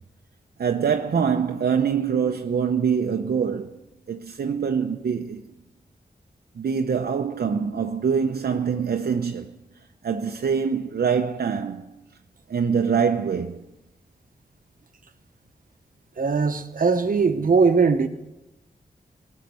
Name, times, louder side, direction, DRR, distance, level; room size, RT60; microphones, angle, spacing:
voice 1, 0.6-3.8 4.1-5.4 6.6-9.6 10.0-11.9 12.5-13.6, right 6 dB, 75° right, 0.7 m, -24 dB
voice 2, 16.2-18.1, right 5 dB, 60° right, 1.1 m, -20 dB
18.5 x 6.6 x 9.5 m
wide cardioid pair, 110°, 16 cm